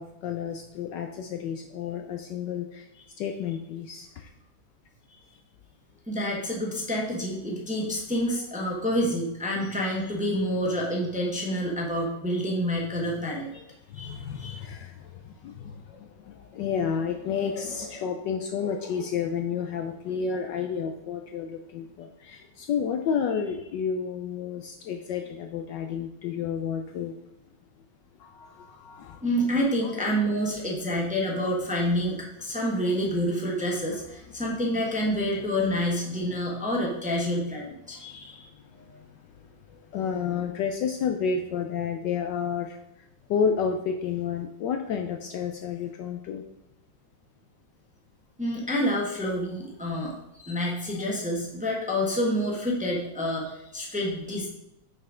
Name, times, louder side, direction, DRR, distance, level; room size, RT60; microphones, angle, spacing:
voice 1, 0.0-2.9 3.2-4.3 13.5-13.6 13.9-27.1 28.2-29.2 29.8-29.9 39.7-42.8 43.3-46.4, left 7 dB, 70° left, 5 dB, 1.1 m, -31 dB
voice 2, 6.1-13.5 13.9-14.6 29.2-39.0 48.4-54.5, equal, 5° right, -2 dB, 0.9 m, -28 dB
5.9 x 5.5 x 4.9 m, 0.88 s
omnidirectional pair, 2.2 m